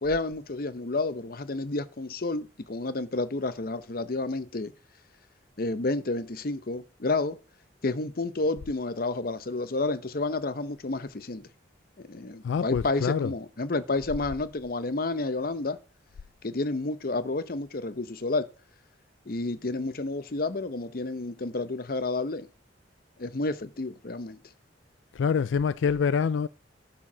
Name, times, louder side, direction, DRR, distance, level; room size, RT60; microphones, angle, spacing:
voice 1, 0.0-4.7 5.6-7.4 7.8-11.5 12.0-15.8 16.4-18.5 19.3-22.5 23.2-24.4, left 2 dB, 50° left, 0.7 m, -30 dB
voice 2, 12.4-13.3 25.1-26.5, left 6 dB, 80° left, 0.4 m, -26 dB
11.5 x 4.5 x 6.0 m
head